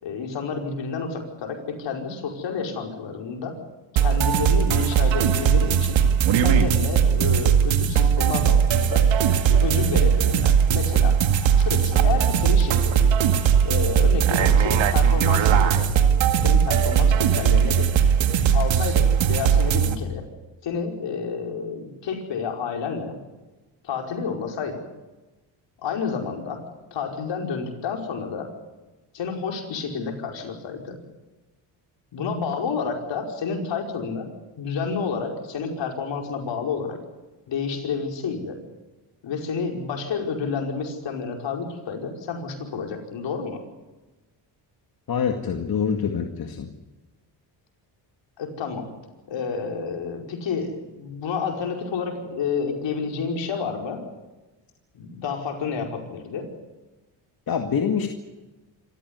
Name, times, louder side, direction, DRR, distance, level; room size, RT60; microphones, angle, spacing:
voice 1, 0.0-3.5 3.9-6.0 6.4-9.1 9.5-11.2 11.6-13.1 13.6-15.9 16.4-18.0 18.5-20.2 20.6-23.2 23.8-24.8 25.8-28.5 29.1-31.0 32.1-34.3 34.6-37.0 37.5-38.6 39.2-43.6 48.4-48.9 49.3-54.0 54.9-56.5, left 5 dB, 70° left, 2 dB, 5.2 m, -30 dB
sound 1, 4.0-20.0, right 8 dB, 80° right, 2.2 m, -19 dB
voice 2, 45.1-46.7 57.5-58.1, left 7 dB, 50° left, 4 dB, 2.2 m, -25 dB
26.5 x 14.5 x 9.7 m, 1.1 s
cardioid pair, 85°, 45 cm